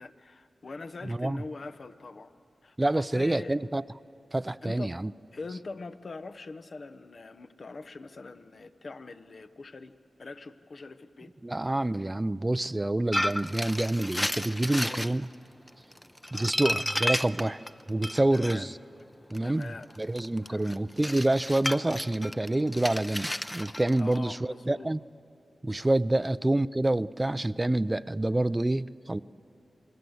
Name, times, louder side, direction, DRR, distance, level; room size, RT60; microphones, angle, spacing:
voice 1, 0.0-2.3 2.6-3.6 4.6-5.0 5.3-9.9 10.2-11.3 14.9-15.2 18.3-18.7 19.4-19.9 20.5-20.8 24.0-24.9 26.2-26.3, left 3 dB, 60° left, 10 dB, 1.0 m, -43 dB
voice 2, 1.0-1.4 2.8-3.8 4.3-5.1 11.4-15.3 16.3-17.6 17.9-18.7 19.3-19.7 20.0-25.0 25.6-29.2, right 1 dB, 25° right, 16 dB, 0.5 m, -27 dB
sound 1, 13.1-15.1 15.7-18.6 19.3-24.2, left 1 dB, 10° left, 0.7 m, -32 dB
28.0 x 21.0 x 7.9 m, 2.6 s
cardioid pair, 50°, 0 cm